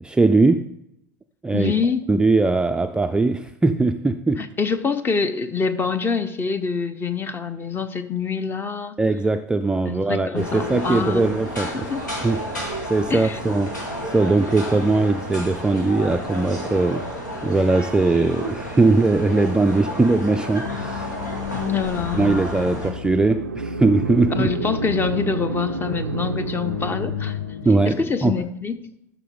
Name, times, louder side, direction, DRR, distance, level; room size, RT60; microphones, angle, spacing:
voice 1, 0.0-0.7 1.4-1.7 2.1-4.4 9.0-11.9 12.2-17.0 17.4-21.1 22.1-24.5 27.6-28.3, right 3 dB, 10° right, 7 dB, 0.4 m, -20 dB
voice 2, 1.5-2.1 4.4-9.0 9.9-11.3 11.6-12.0 13.1-13.4 21.5-22.4 24.3-27.4 27.8-28.8, left 5 dB, 20° left, 11 dB, 0.8 m, -25 dB
sound 1, 10.3-22.9, equal, 85° left, 2.3 m, -31 dB
sound 2, 20.6-27.8, left 11 dB, 65° left, 0.4 m, -34 dB
sound 3, 22.7-27.7, right 5 dB, 85° right, 0.4 m, -30 dB
13.0 x 6.0 x 3.8 m, 0.78 s
figure-of-eight pair, 75°, 9 cm